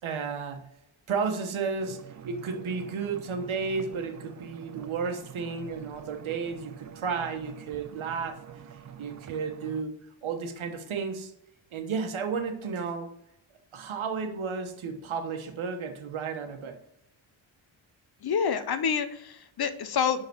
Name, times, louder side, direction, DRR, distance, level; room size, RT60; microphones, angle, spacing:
voice 1, 0.0-0.7 1.1-8.4 9.0-10.0 10.2-11.3 11.7-13.1 13.7-16.8, right 5 dB, 80° right, 1.2 m, -33 dB
sound 1, 1.8-9.8, right 8 dB, 40° right, 0.4 m, -46 dB
voice 2, 18.2-20.2, left 7 dB, 50° left, 0.7 m, -28 dB
10.5 x 4.0 x 4.5 m
wide cardioid pair, 155°, 48 cm